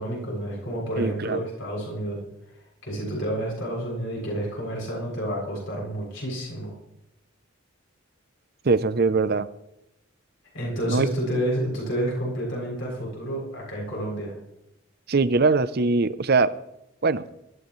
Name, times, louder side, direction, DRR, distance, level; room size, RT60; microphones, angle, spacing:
voice 1, 0.0-2.2 2.8-6.7 10.5-14.4, right 1 dB, 65° left, -2 dB, 7.3 m, -29 dB
voice 2, 1.0-1.4 8.6-9.5 10.9-11.1 15.1-16.5 17.0-17.2, right 3 dB, 50° right, 14 dB, 0.6 m, -21 dB
20.5 x 14.5 x 3.2 m, 0.86 s
head